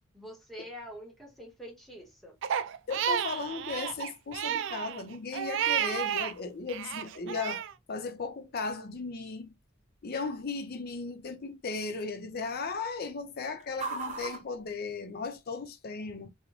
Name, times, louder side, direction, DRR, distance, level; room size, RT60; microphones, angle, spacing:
voice 1, 0.1-2.4, equal, ahead, 0.9 m, -45 dB
sound 1, 0.8-15.6, right 4 dB, 35° right, 1.0 m, -49 dB
Crying sobbing, 2.4-6.3 6.7-7.7, right 9 dB, 60° right, 0.3 m, -31 dB
voice 2, 2.9-9.5 10.0-16.3, left 4 dB, 50° left, 0.5 m, -36 dB
3.8 x 2.1 x 3.0 m
head